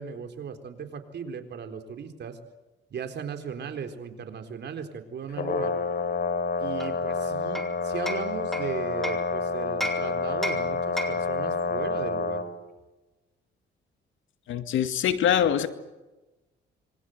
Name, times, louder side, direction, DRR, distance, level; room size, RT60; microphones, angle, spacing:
voice 1, 0.0-2.4 2.9-5.7 6.6-12.4, right 7 dB, 60° right, 6 dB, 4.0 m, -37 dB
Brass instrument, 5.3-12.5, left 4 dB, 55° left, 4.1 m, -28 dB
Hammer, 6.8-9.3 9.8-11.4, equal, ahead, 4.4 m, -35 dB
voice 2, 14.5-15.7, left 9 dB, 75° left, 9 dB, 2.2 m, -24 dB
27.0 x 24.5 x 8.0 m, 1.1 s
cardioid pair, 90°, 20 cm